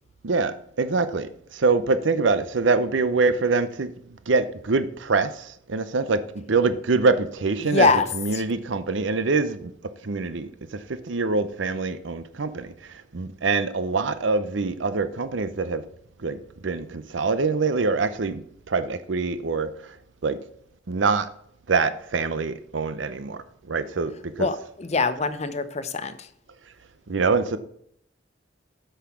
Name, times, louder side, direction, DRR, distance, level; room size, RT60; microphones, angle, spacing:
voice 1, 0.2-3.9 4.3-6.2 6.5-9.7 10.0-12.7 13.1-15.8 16.2-18.4 18.7-19.7 20.2-20.4 20.9-21.3 21.7-23.4 23.7-24.5 27.1-27.6, right 4 dB, 80° right, 12 dB, 0.7 m, -24 dB
voice 2, 7.6-8.1 24.4-26.1, left 4 dB, 35° left, 12 dB, 0.6 m, -23 dB
8.4 x 5.7 x 5.9 m, 0.69 s
head